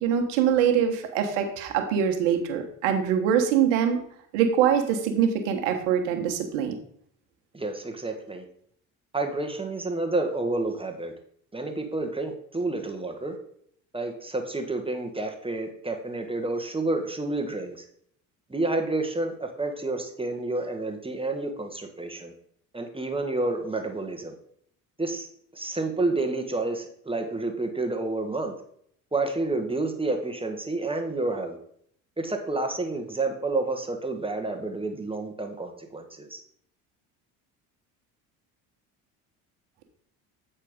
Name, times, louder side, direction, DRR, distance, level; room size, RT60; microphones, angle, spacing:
voice 1, 0.0-4.0 4.3-6.7, right 8 dB, 75° right, 4 dB, 1.4 m, -23 dB
voice 2, 7.5-8.4 9.1-11.1 11.5-13.4 13.9-17.8 18.5-22.3 22.7-24.3 25.0-25.3 25.5-28.5 29.1-31.6 32.2-36.4, right 2 dB, 15° right, 4 dB, 1.3 m, -29 dB
8.2 x 4.4 x 5.1 m, 0.66 s
hypercardioid pair, 65°, 42 cm